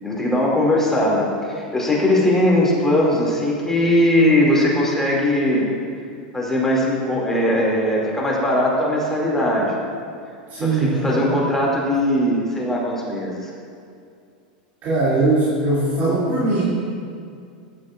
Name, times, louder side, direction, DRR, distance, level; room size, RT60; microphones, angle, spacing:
voice 1, 0.0-5.6 6.3-9.7 10.6-13.5, left 1 dB, 10° left, -4 dB, 2.3 m, -19 dB
voice 2, 10.5-11.4 14.8-16.6, right 2 dB, 45° right, -8 dB, 2.5 m, -20 dB
14.0 x 9.9 x 2.4 m, 2.4 s
hypercardioid pair, 105°, 5 cm